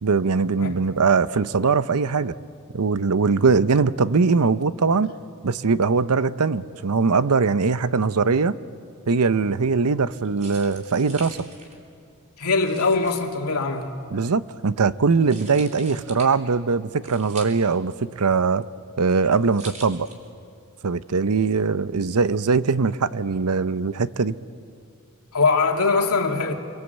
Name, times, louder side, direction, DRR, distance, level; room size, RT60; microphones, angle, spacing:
voice 1, 0.0-2.3 2.7-5.1 5.4-8.6 9.1-11.5 14.1-18.6 19.0-20.1 20.8-24.4, right 4 dB, 90° right, 0.7 m, -21 dB
sound 1, 10.1-20.6, right 3 dB, 35° right, 3.6 m, -45 dB
voice 2, 12.4-13.9 25.3-26.5, left 4 dB, 80° left, 2.6 m, -22 dB
28.0 x 23.0 x 8.1 m
head